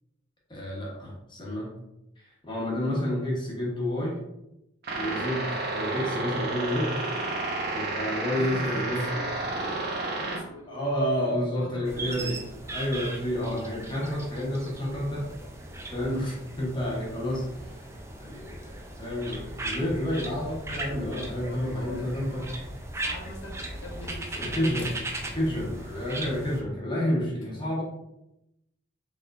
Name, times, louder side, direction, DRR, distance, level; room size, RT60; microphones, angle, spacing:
voice 1, 0.5-1.7 2.2-4.2 4.9-7.0 7.7-9.1 10.7-12.4 12.7-15.3 15.9-22.5 24.3-24.9 25.2-27.8, equal, 25° left, -4 dB, 1.0 m, -30 dB
sound 1, 4.8-10.4, right 2 dB, 50° right, 1.0 m, -31 dB
voice 2, 8.3-12.4 21.3-24.7, equal, 80° left, -2 dB, 1.0 m, -42 dB
sound 2, 11.9-26.6, right 2 dB, 15° right, 0.4 m, -38 dB
4.8 x 3.5 x 2.5 m, 0.86 s
head